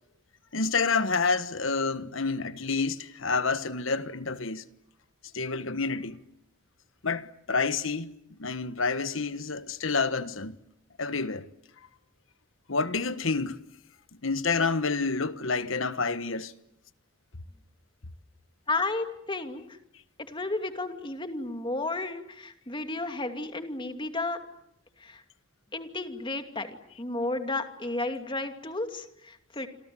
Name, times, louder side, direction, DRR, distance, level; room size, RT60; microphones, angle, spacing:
voice 1, 0.5-4.6 5.3-6.2 7.0-8.1 8.4-10.6 11.0-11.5 12.7-13.6 14.2-16.5, left 4 dB, 65° left, 1.4 m, -28 dB
voice 2, 18.7-19.6 20.3-24.4 25.0-25.2 25.7-29.7, left 2 dB, 25° left, 2.6 m, -33 dB
27.5 x 27.0 x 7.8 m
head